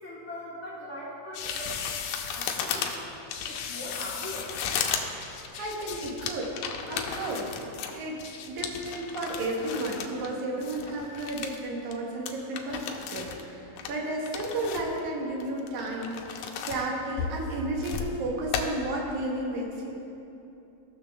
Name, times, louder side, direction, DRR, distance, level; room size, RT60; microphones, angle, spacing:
voice 1, 0.0-1.8 2.3-3.0 3.4-4.5, left 1 dB, 65° left, -7 dB, 0.7 m, -40 dB
sound 1, 1.3-10.3 10.6-11.6 11.9-12.0 12.3-13.4 13.8-15.0 15.4-16.8 17.2-18.1 18.5-18.6, left 7 dB, 85° left, 2.0 m, -34 dB
voice 2, 5.6-6.5 6.9-7.6 7.9-19.9, right 1 dB, 80° right, -1 dB, 2.6 m, -33 dB
15.5 x 6.5 x 3.4 m, 2.9 s
omnidirectional pair, 3.4 m